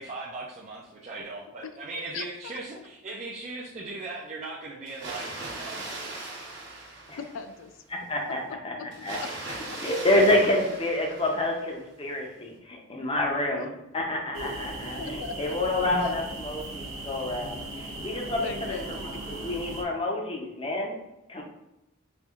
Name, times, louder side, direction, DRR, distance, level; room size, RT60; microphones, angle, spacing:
voice 1, 0.0-6.2, right 3 dB, 35° right, -4 dB, 0.3 m, -39 dB
voice 2, 2.1-2.6 7.2-7.8 8.5-8.6 10.7-10.8 15.0-15.7 16.0-16.1 18.4-19.2, left 5 dB, 70° left, 9 dB, 0.3 m, -39 dB
Water, 4.9-7.7 8.9-11.7, right 2 dB, 60° right, 0.9 m, -39 dB
voice 3, 7.9-8.4 8.6-9.2 9.8-13.7 13.9-20.9 21.3-21.4, left 1 dB, 25° left, 0 dB, 0.6 m, -28 dB
sound 1, 14.3-19.8, right 2 dB, 85° right, 0.6 m, -38 dB
4.3 x 2.6 x 2.4 m, 0.90 s
head